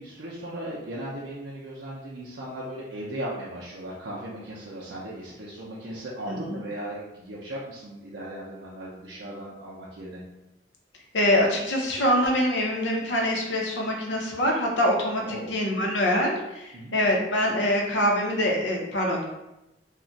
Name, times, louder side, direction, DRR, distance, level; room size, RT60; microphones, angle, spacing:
voice 1, 0.0-10.2 15.2-15.6 16.7-16.9, right 1 dB, 85° right, -5 dB, 0.5 m, -37 dB
voice 2, 6.3-6.6 11.1-19.2, left 1 dB, 90° left, 0 dB, 0.7 m, -24 dB
2.4 x 2.2 x 3.8 m, 0.93 s
head